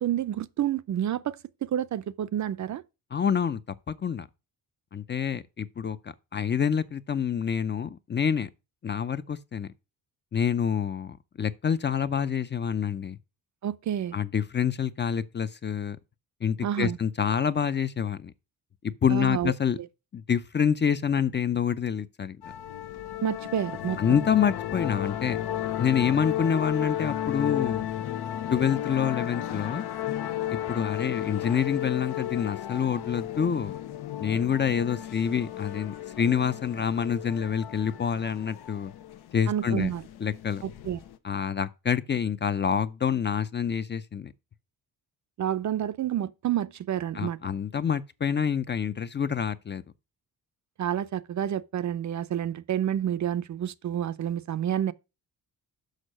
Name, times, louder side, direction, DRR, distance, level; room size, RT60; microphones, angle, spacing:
voice 1, 0.0-2.8 13.6-14.2 16.6-17.0 19.1-19.5 23.2-24.2 39.5-40.0 40.6-41.0 45.4-47.4 50.8-54.9, right 10 dB, 50° right, 0.5 m, -29 dB
voice 2, 3.1-3.6 3.9-4.3 4.9-8.5 8.8-9.7 10.3-13.2 14.1-16.0 16.4-18.3 18.8-19.8 20.1-22.4 24.0-25.4 25.8-27.9 28.5-29.8 30.5-33.7 34.2-38.9 39.3-39.9 40.2-40.6 41.2-44.3 47.1-49.8, left 7 dB, 30° left, 0.5 m, -27 dB
sound 1, 22.4-41.2, left 12 dB, 85° left, 0.9 m, -34 dB
6.5 x 5.4 x 6.2 m
cardioid pair, 120°, 38 cm